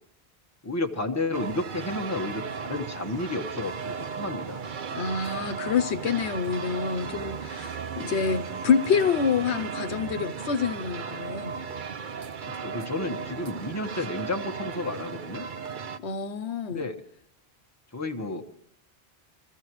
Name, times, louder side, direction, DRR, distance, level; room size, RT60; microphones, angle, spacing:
voice 1, 0.6-4.6 8.0-8.2 12.6-15.5 16.7-17.0 17.9-18.4, left 2 dB, 15° left, 1.4 m, -32 dB
sound 1, 1.3-16.0, right 6 dB, 50° right, 0.9 m, -36 dB
voice 2, 4.9-11.6 16.0-16.9, left 6 dB, 80° left, 1.0 m, -27 dB
25.5 x 15.0 x 3.1 m
omnidirectional pair, 1.1 m